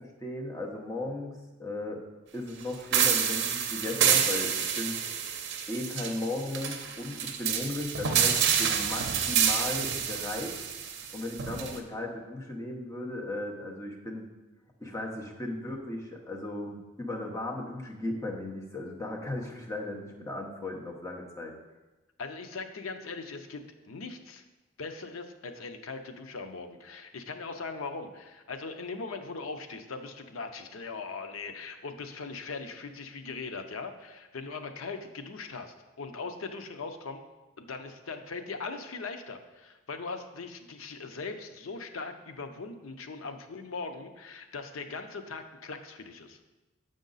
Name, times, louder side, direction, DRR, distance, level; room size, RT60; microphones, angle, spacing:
voice 1, 0.0-2.0 2.3-5.0 5.7-10.7 11.1-14.3 14.8-21.5, left 2 dB, 15° left, -1 dB, 0.8 m, -36 dB
sound 1, 2.9-11.8, right 7 dB, 55° right, 0.6 m, -28 dB
voice 2, 22.2-24.4 24.8-37.2 37.6-46.4, left 4 dB, 85° left, 7 dB, 0.6 m, -40 dB
7.3 x 5.1 x 3.9 m, 1.1 s
head